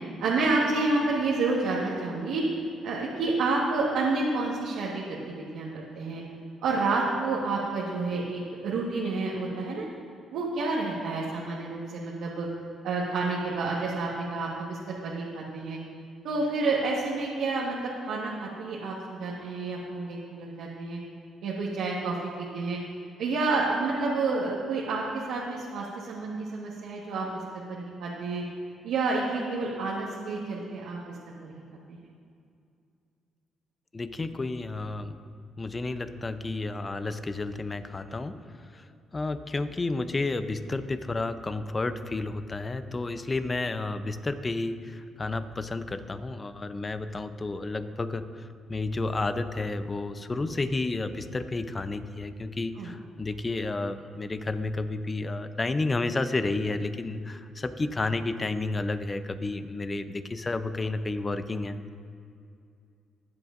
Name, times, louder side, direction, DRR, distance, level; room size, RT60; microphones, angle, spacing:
voice 1, 0.2-2.4 2.8-6.2 6.6-9.9 10.3-12.5 12.8-15.8 16.2-21.0 21.4-22.8 23.2-27.4 27.7-28.4 28.8-31.0 31.4-31.5 52.8-52.9, right 3 dB, 85° right, -5 dB, 1.4 m, -29 dB
voice 2, 33.9-35.1 35.6-38.4 38.7-61.8, left 2 dB, 25° left, 11 dB, 0.6 m, -31 dB
20.5 x 7.8 x 2.6 m, 2.4 s
cardioid pair, 90°, 0 cm